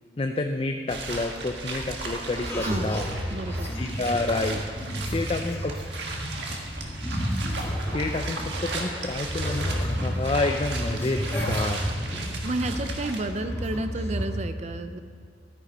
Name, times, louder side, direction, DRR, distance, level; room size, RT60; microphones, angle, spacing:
voice 1, 0.2-3.1 3.7-4.6 5.1-5.8 7.9-11.8, left 2 dB, 30° left, 5 dB, 0.4 m, -29 dB
sound 1, 0.9-13.2, right 3 dB, 75° right, 1.6 m, -36 dB
sound 2, 2.4-8.9 9.1-13.0 13.3-14.2, equal, 15° left, 1.7 m, -31 dB
voice 2, 2.6-3.7 12.4-15.0, right 2 dB, 40° right, 9 dB, 0.5 m, -31 dB
13.0 x 9.9 x 4.3 m, 2.2 s
head